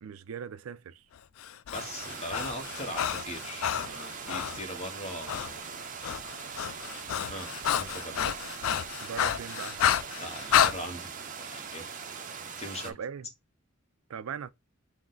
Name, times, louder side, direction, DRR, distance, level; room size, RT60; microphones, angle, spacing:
voice 1, 0.0-1.0 8.1-8.3 9.0-9.8 12.8-13.3 14.1-14.5, right 7 dB, 85° right, 0.4 m, -39 dB
Breathing, 1.4-4.6 5.3-5.5 5.8-10.8, left 9 dB, 80° left, 0.4 m, -30 dB
voice 2, 1.7-5.7 7.3-8.3 10.2-12.0 12.6-12.9, left 1 dB, 30° left, 1.0 m, -40 dB
sound 1, 1.7-12.9, right 6 dB, 40° right, 0.6 m, -41 dB
6.0 x 2.1 x 3.8 m
head